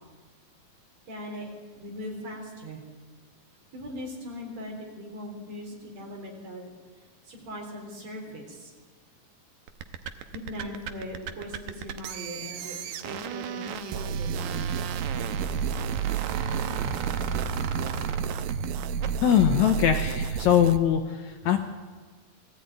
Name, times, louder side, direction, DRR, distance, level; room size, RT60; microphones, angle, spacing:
voice 1, 1.1-1.5 1.7-2.8 3.7-6.7 7.2-8.7 10.3-12.8 13.0-14.7, equal, 50° right, 0 dB, 5.0 m, -39 dB
sound 1, 9.7-19.4, right 8 dB, 70° right, 2.0 m, -36 dB
sound 2, 13.9-20.8, right 7 dB, 90° right, 2.6 m, -30 dB
voice 2, 19.2-21.6, left 10 dB, 70° left, 6 dB, 2.0 m, -22 dB
21.0 x 14.5 x 9.2 m, 1.4 s
omnidirectional pair, 4.1 m